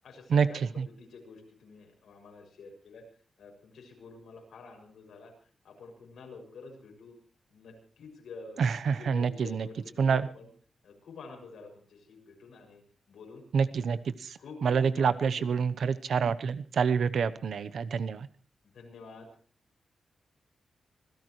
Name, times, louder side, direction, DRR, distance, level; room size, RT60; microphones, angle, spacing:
voice 1, 0.0-3.0 3.4-5.3 5.6-7.1 7.5-10.5 10.8-12.8 13.1-13.4 13.7-14.0 14.4-15.5 18.6-19.3, left 4 dB, 85° left, 2 dB, 6.8 m, -48 dB
voice 2, 8.6-9.7 10.0-10.3 13.5-14.3 14.6-18.3, right 6 dB, 70° right, 13 dB, 0.9 m, -27 dB
26.0 x 16.5 x 3.2 m, 0.41 s
wide cardioid pair, 150°, 0 cm